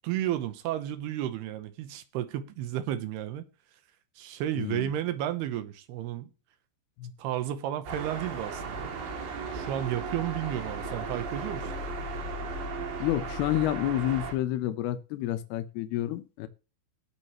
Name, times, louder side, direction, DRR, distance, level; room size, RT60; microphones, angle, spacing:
voice 1, 0.0-3.5 4.2-6.3 7.2-8.9 9.5-11.7, right 12 dB, 80° right, 2.5 m, -32 dB
voice 2, 4.6-4.9 7.0-7.1 13.0-16.5, left 13 dB, 80° left, 2.3 m, -29 dB
sound 1, 7.9-14.3, right 3 dB, 65° right, 4.7 m, -36 dB
19.0 x 6.6 x 3.1 m
omnidirectional pair, 5.7 m